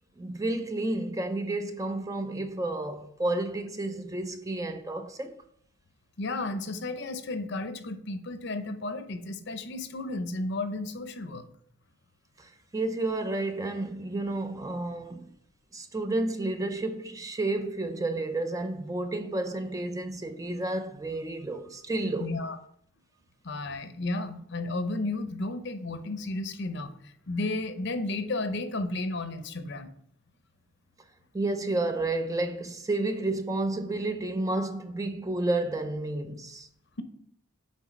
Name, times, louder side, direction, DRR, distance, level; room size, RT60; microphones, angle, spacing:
voice 1, 0.2-5.4 12.4-15.3 15.7-22.3 31.3-36.7, right 2 dB, 15° right, 0.4 m, -31 dB
voice 2, 6.2-11.4 22.2-22.6 23.4-29.9, left 2 dB, 55° left, 0.7 m, -33 dB
8.6 x 3.9 x 5.1 m
head